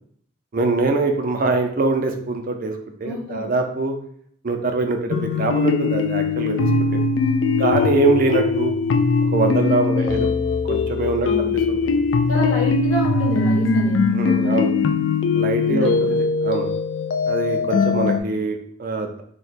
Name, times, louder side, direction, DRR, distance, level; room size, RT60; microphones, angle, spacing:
voice 1, 0.5-4.0 4.4-7.0 7.6-8.7 9.3-10.3 10.7-12.0 14.1-14.7 15.3-16.0 16.4-16.7 17.3-19.1, right 3 dB, 45° right, 4 dB, 0.4 m, -23 dB
voice 2, 3.0-3.5 9.6-10.2 11.2-11.5 12.3-14.1 14.4-14.6 15.7-16.1, left 1 dB, 85° left, -4 dB, 1.2 m, -28 dB
sound 1, 5.1-18.2, left 4 dB, 65° left, 0.3 m, -20 dB
2.8 x 2.2 x 4.1 m, 0.63 s
head